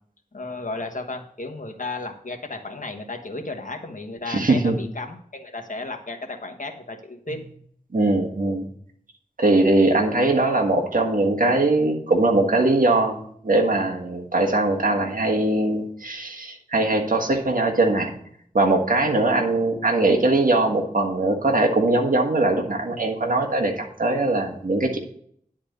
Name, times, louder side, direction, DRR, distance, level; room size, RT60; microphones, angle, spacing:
voice 1, 0.3-7.4, left 3 dB, 55° left, 4 dB, 1.4 m, -34 dB
voice 2, 4.3-4.8 7.9-8.6 9.4-18.1 18.5-25.0, right 2 dB, 65° right, 2 dB, 1.5 m, -21 dB
10.0 x 4.4 x 6.7 m, 0.64 s
wide cardioid pair, 60°, 15 cm